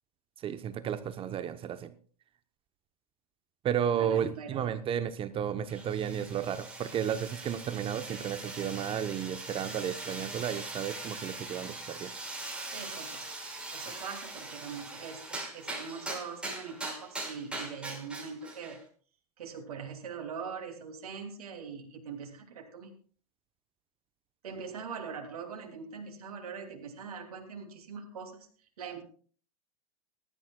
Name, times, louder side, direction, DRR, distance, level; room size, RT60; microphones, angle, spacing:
voice 1, 0.4-1.9 3.6-12.1, right 9 dB, 30° right, 12 dB, 0.9 m, -33 dB
voice 2, 4.0-4.7 12.7-13.2 13.7-18.8 19.4-22.9 24.4-28.5 28.8-29.0, right 6 dB, 70° right, 2 dB, 2.9 m, -42 dB
sound 1, 5.7-18.8, right 2 dB, 5° right, 5.6 m, -41 dB
20.0 x 13.0 x 2.4 m, 0.43 s
hypercardioid pair, 95°, 20 cm